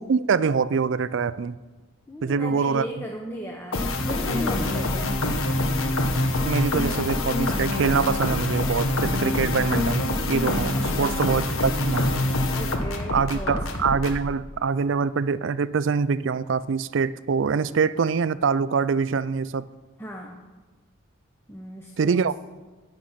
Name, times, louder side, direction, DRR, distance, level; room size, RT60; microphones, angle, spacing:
voice 1, 0.0-1.6 2.2-2.9 6.4-12.2 13.1-19.6 22.0-22.3, right 5 dB, 60° right, 17 dB, 0.4 m, -24 dB
voice 2, 2.1-5.2 10.7-11.3 12.5-13.7 20.0-20.4 21.5-22.2, equal, 10° left, 0 dB, 0.8 m, -36 dB
sound 1, 3.7-14.2, left 2 dB, 80° left, 1.2 m, -25 dB
17.0 x 6.4 x 5.7 m, 1.3 s
head